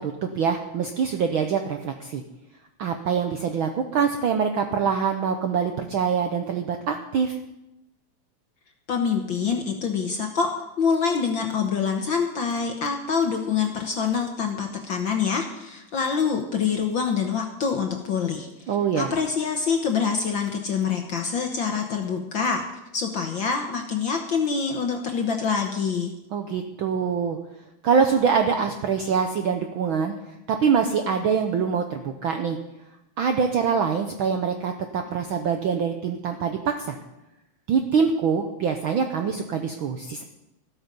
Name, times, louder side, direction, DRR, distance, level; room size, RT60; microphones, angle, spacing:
voice 1, 0.0-2.2 2.8-7.4 18.7-19.1 26.3-27.4 27.8-30.1 30.5-32.6 33.2-37.0 37.7-40.2, right 6 dB, 75° right, 6 dB, 1.1 m, -24 dB
voice 2, 8.9-22.7 22.9-26.1, left 6 dB, 60° left, 3 dB, 1.4 m, -26 dB
14.5 x 12.5 x 5.3 m, 0.95 s
omnidirectional pair, 3.3 m